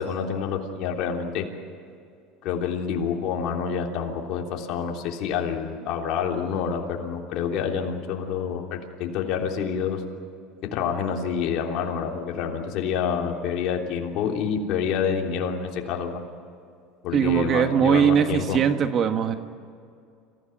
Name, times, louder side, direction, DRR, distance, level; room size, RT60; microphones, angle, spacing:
voice 1, 0.0-1.5 2.4-10.0 10.7-16.2 17.0-18.6, left 7 dB, 60° left, 1 dB, 3.3 m, -28 dB
voice 2, 17.1-19.3, right 8 dB, 40° right, 7 dB, 1.5 m, -21 dB
26.5 x 16.0 x 9.4 m, 2.4 s
supercardioid pair, 125°, 0 cm